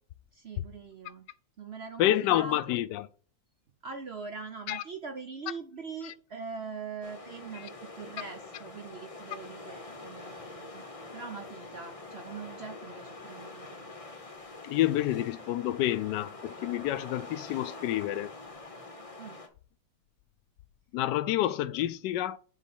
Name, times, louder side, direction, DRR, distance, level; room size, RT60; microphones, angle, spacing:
voice 1, 0.3-1.3 1.6-2.7 3.8-10.8 11.1-13.9 19.2-19.4, right 5 dB, 65° right, 0.6 m, -42 dB
voice 2, 2.0-3.1 4.7-4.8 14.6-18.3 20.9-22.4, left 13 dB, 70° left, 1.2 m, -28 dB
sound 1, 7.0-19.5, left 3 dB, 25° left, 0.8 m, -45 dB
7.5 x 3.8 x 5.4 m
omnidirectional pair, 2.0 m